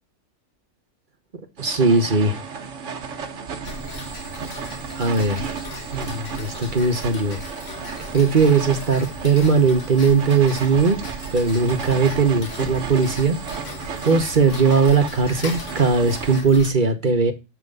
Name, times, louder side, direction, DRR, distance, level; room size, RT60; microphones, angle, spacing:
voice 1, 1.6-2.4 4.9-5.6 5.9-7.4 8.1-11.0 11.3-13.7 14.0-17.3, right 4 dB, 40° right, 1.2 m, -19 dB
sound 1, 1.6-16.4, right 5 dB, 70° right, 1.3 m, -34 dB
Tick-tock, 3.6-16.7, left 1 dB, 65° left, 1.7 m, -37 dB
8.2 x 3.7 x 6.5 m
omnidirectional pair, 1.3 m